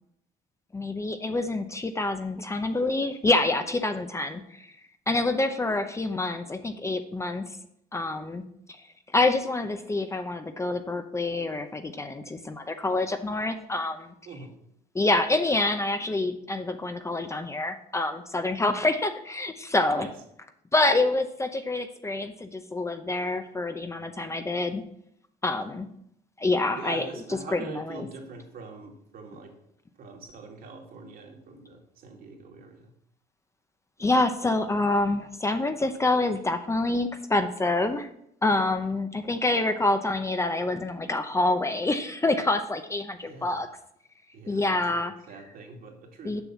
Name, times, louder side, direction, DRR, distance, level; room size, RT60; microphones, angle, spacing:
voice 1, 0.7-4.7 5.1-7.4 7.9-8.4 9.1-14.1 14.9-20.1 20.7-24.8 25.4-25.9 26.4-27.1 27.5-28.1 34.0-38.1 38.4-43.7 44.5-45.1 46.2-46.4, left 2 dB, 15° left, 8 dB, 0.7 m, -27 dB
voice 2, 19.8-20.1 26.7-29.5 30.0-32.9 38.5-38.7 43.2-43.8 44.3-45.0 45.3-46.4, right 4 dB, 60° right, 1 dB, 2.4 m, -43 dB
7.1 x 6.2 x 7.2 m, 0.73 s
cardioid pair, 110°, 17 cm